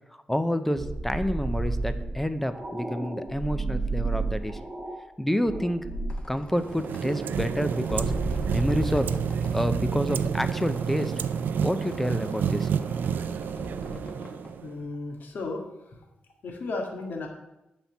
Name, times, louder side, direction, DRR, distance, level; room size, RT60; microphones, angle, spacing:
voice 1, 0.3-4.6 5.2-5.8 6.3-8.1 8.5-9.1 9.5-11.1 11.6-12.7, equal, 5° left, 10 dB, 0.5 m, -28 dB
sound 1, 0.7-5.0 5.5-6.3 7.0-11.2 13.4-13.9, right 3 dB, 35° right, 1.9 m, -32 dB
Squeak, 5.8-15.4, left 2 dB, 30° left, 1.1 m, -46 dB
sound 2, 6.5-14.8, right 7 dB, 75° right, 0.4 m, -30 dB
voice 2, 14.6-15.6 16.4-17.3, left 3 dB, 70° left, 2 dB, 1.8 m, -34 dB
9.2 x 4.3 x 7.0 m, 0.93 s
wide cardioid pair, 130°, 3 cm